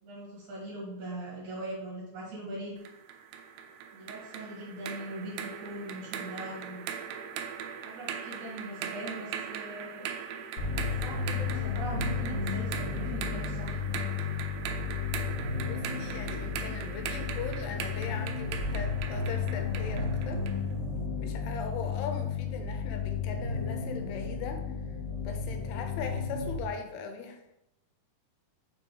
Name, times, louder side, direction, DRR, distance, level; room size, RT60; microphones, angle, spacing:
voice 1, 0.0-2.8 3.9-6.8 7.8-10.1 11.0-14.0 21.3-21.6, right 1 dB, 55° right, -5 dB, 2.7 m, -41 dB
sound 1, 2.9-20.7, right 8 dB, 85° right, 2.1 m, -40 dB
sound 2, 10.6-26.6, left 5 dB, 55° left, 1.6 m, -33 dB
voice 2, 15.5-20.4 21.2-24.6 25.2-27.6, left 5 dB, 80° left, 5 dB, 2.6 m, -39 dB
5.9 x 4.8 x 3.8 m, 0.86 s
omnidirectional pair, 4.7 m